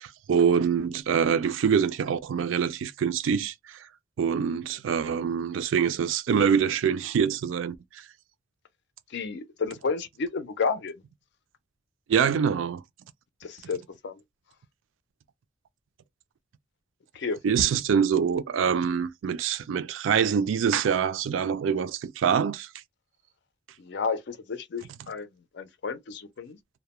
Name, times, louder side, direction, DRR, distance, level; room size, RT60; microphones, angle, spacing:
voice 1, 0.0-3.9 4.2-8.0 12.1-12.8 17.4-22.7, right 7 dB, 75° right, 0.3 m, -25 dB
voice 2, 9.1-10.9 13.4-14.2 17.1-17.4 23.8-25.3 25.5-26.6, left 5 dB, 65° left, 0.5 m, -31 dB
2.2 x 2.1 x 2.9 m
head